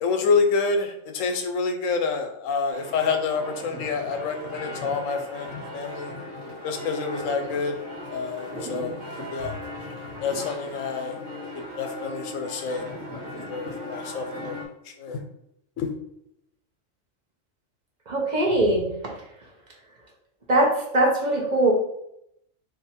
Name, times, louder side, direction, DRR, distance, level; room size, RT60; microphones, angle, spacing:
voice 1, 0.0-6.1 6.6-7.8 8.1-9.0 9.3-9.6 10.2-11.2 11.5-12.8 13.5-15.2 15.8-15.9, left 5 dB, 85° left, 5 dB, 1.0 m, -27 dB
sound 1, 2.7-14.6, left 1 dB, 75° right, 1.3 m, -37 dB
voice 2, 18.1-19.2 20.5-21.7, right 1 dB, 40° right, -1 dB, 0.7 m, -22 dB
2.7 x 2.5 x 4.1 m, 0.76 s
omnidirectional pair, 1.3 m